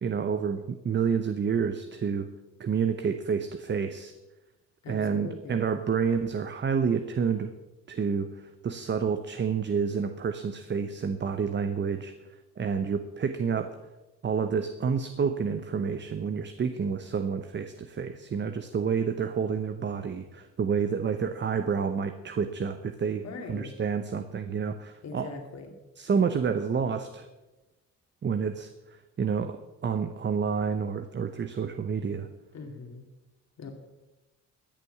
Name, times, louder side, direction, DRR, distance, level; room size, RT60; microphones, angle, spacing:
voice 1, 0.0-2.3 2.6-4.1 4.9-7.5 7.9-8.3 8.6-12.1 12.6-13.7 14.2-25.3 26.0-27.3 28.2-28.7 29.2-32.3, right 6 dB, 35° right, 9 dB, 0.8 m, -29 dB
voice 2, 4.8-5.7 23.2-23.7 25.0-25.8 32.5-33.1 33.6-33.7, left 3 dB, 60° left, 3 dB, 2.6 m, -41 dB
13.5 x 7.0 x 7.9 m, 1.1 s
cardioid pair, 90°, 30 cm